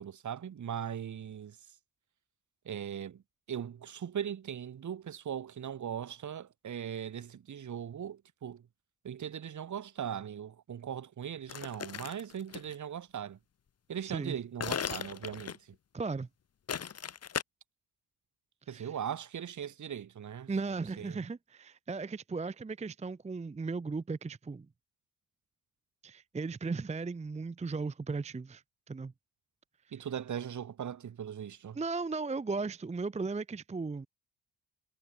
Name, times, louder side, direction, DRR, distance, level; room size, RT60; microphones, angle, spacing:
voice 1, 0.0-1.6 2.6-3.2 3.5-8.6 9.0-13.4 13.9-15.7 18.7-20.5 21.0-21.2 29.9-31.8, right 9 dB, 45° right, 1.2 m, -39 dB
sound 1, 11.5-12.8 14.6-15.7 16.7-17.4, left 8 dB, 40° left, 0.9 m, -37 dB
voice 2, 14.0-14.4 15.9-16.3 18.7-18.9 20.5-24.7 26.0-29.1 31.7-34.1, right 4 dB, 15° right, 0.6 m, -36 dB
cardioid pair, 80°, 41 cm